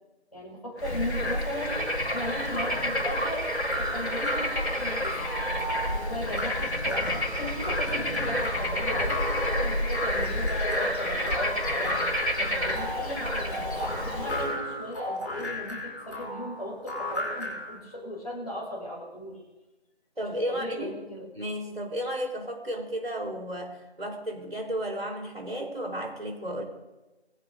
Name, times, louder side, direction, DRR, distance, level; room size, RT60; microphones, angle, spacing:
voice 1, 0.3-1.8 2.1-3.5 3.8-5.2 5.9-12.0 12.4-19.4 20.2-21.3, left 1 dB, 35° left, -4 dB, 5.6 m, -37 dB
Bird / Frog, 0.8-14.6, equal, 75° left, 3.6 m, -29 dB
sound 1, 3.5-17.8, left 1 dB, 15° left, 5.2 m, -35 dB
voice 2, 20.2-21.0 21.3-26.6, equal, 60° right, 1 dB, 4.0 m, -33 dB
22.5 x 17.0 x 2.7 m, 1.1 s
figure-of-eight pair, 170°, 33 cm